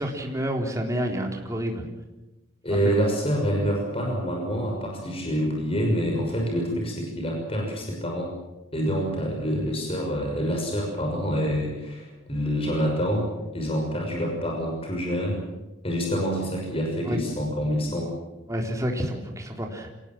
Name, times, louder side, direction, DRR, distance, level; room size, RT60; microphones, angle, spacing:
voice 1, 0.0-1.8 2.8-2.9 17.0-17.2 18.5-19.9, equal, 15° right, 2 dB, 3.7 m, -29 dB
voice 2, 2.6-8.3 8.7-13.3 13.5-15.4 15.8-18.1, equal, 30° left, 1 dB, 6.2 m, -27 dB
26.5 x 18.5 x 7.6 m, 1.1 s
head